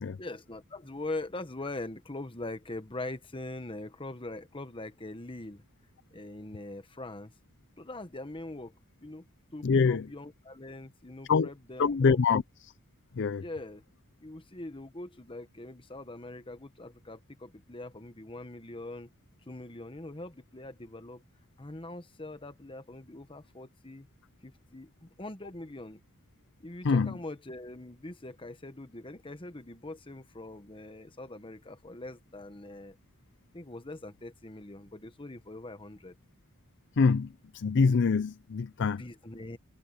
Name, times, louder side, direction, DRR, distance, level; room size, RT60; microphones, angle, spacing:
voice 1, 0.2-5.6 6.1-7.3 7.8-8.7 9.0-9.2 9.5-12.2 13.4-13.8 14.2-19.1 19.5-21.2 21.6-24.1 24.4-26.0 26.6-33.0 33.5-36.1 39.0-39.6, left 2 dB, 25° left, 1.2 m, -42 dB
voice 2, 9.6-10.0 11.3-11.5 11.8-12.4 13.2-13.4 26.8-27.1 37.0-37.3 37.5-39.0, left 5 dB, 55° left, 0.5 m, -24 dB
head